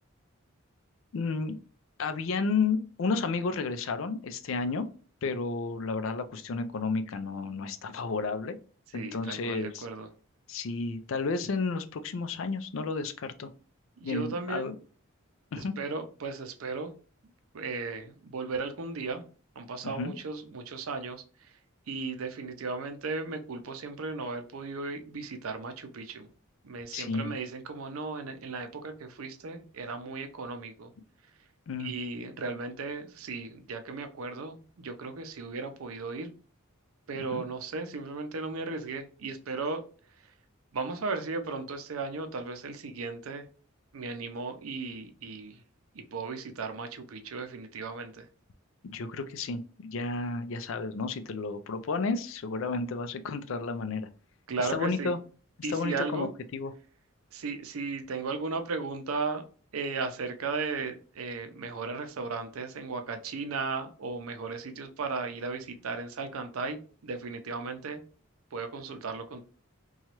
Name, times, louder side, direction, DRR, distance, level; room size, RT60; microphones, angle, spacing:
voice 1, 1.1-1.6 2.0-4.9 5.2-8.6 8.9-9.9 10.5-13.5 14.0-14.8 15.5-15.7 19.8-20.1 26.9-27.3 31.7-31.9 37.3-37.4 48.8-54.1 54.6-55.2 55.7-56.7, left 4 dB, 70° left, 10 dB, 0.4 m, -32 dB
voice 2, 8.9-10.1 14.0-14.7 15.6-16.9 17.5-19.2 19.6-21.5 21.9-26.3 26.6-30.9 31.8-36.3 37.1-39.8 40.7-43.5 43.9-45.6 45.9-48.3 54.5-55.1 55.6-56.3 57.3-59.4 59.7-68.0 68.5-69.4, right 4 dB, 85° right, 7 dB, 0.5 m, -36 dB
2.9 x 2.3 x 2.9 m, 0.39 s
head